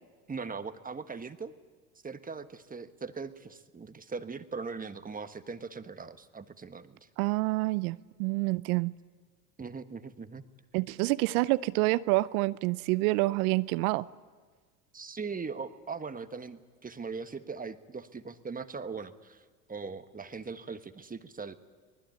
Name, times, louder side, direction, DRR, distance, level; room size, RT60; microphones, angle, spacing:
voice 1, 0.3-1.5 2.0-7.0 9.6-10.4 14.9-21.5, right 5 dB, 20° right, 1.3 m, -40 dB
voice 2, 7.2-8.9 10.7-14.1, right 21 dB, 70° right, 0.7 m, -27 dB
25.0 x 20.0 x 9.2 m
hypercardioid pair, 90°, 45 cm